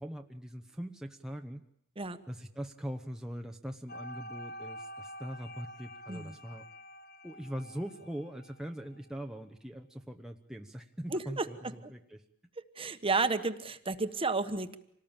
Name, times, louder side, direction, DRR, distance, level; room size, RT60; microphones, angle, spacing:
voice 1, 0.0-1.6 2.3-6.7 7.2-12.2, equal, 5° right, 3 dB, 0.9 m, -42 dB
sound 1, 3.9-9.0, equal, 50° left, 1.7 m, -47 dB
voice 2, 11.1-11.5 11.8-11.9 12.8-14.8, right 3 dB, 25° right, 10 dB, 1.3 m, -32 dB
27.0 x 19.0 x 8.9 m, 0.74 s
head